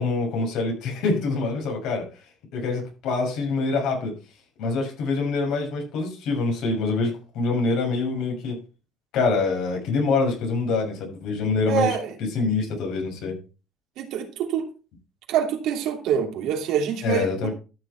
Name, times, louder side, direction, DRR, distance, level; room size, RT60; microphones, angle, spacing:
voice 1, 0.0-2.1 2.5-4.1 4.6-8.6 9.1-12.0 12.3-13.4 17.0-17.5, left 3 dB, 75° left, 6.3 m, -25 dB
voice 2, 11.7-12.2 14.0-14.7 15.3-17.5, right 8 dB, 75° right, 2.9 m, -25 dB
13.0 x 6.9 x 4.6 m
cardioid pair, 115°, 0 cm